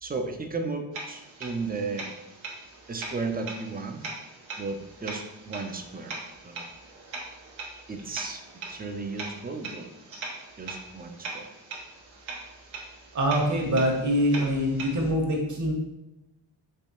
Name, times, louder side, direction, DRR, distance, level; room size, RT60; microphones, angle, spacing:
voice 1, 0.0-2.1 2.9-4.0 4.6-6.1 6.4-6.6 7.9-8.4 8.7-9.9 10.6-11.5, right 3 dB, 20° right, 5 dB, 0.5 m, -34 dB
Clock Ticking And Striking, 0.9-15.1, right 3 dB, 80° right, 0.9 m, -41 dB
voice 2, 13.1-15.7, equal, 40° right, 0 dB, 1.1 m, -24 dB
3.4 x 3.3 x 2.7 m, 0.92 s
cardioid pair, 45°, 45 cm